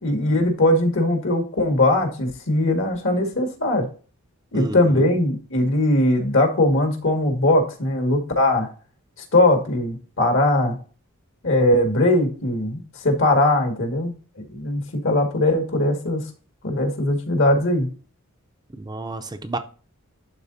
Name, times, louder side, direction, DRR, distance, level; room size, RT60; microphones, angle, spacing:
voice 1, 0.0-3.9 4.5-8.7 9.3-10.8 11.4-14.1 14.5-16.2 16.6-17.9, left 1 dB, 65° left, 2.0 m, -20 dB
voice 2, 4.5-5.1 18.8-19.6, right 2 dB, 20° right, 0.5 m, -31 dB
12.0 x 4.0 x 2.7 m
head